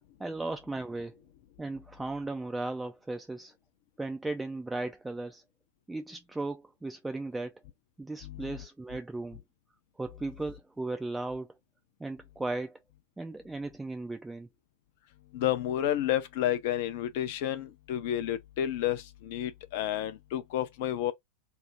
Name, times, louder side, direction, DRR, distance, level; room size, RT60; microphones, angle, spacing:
voice 1, 0.2-1.2 1.6-3.5 4.0-5.4 5.9-7.6 8.0-9.4 10.0-11.5 12.0-12.8 13.2-14.5, right 2 dB, 5° right, 0.3 m, -36 dB
voice 2, 8.2-8.6 15.3-21.1, left 11 dB, 50° left, 0.5 m, -31 dB
2.6 x 2.0 x 3.2 m
figure-of-eight pair, 90°, 0 cm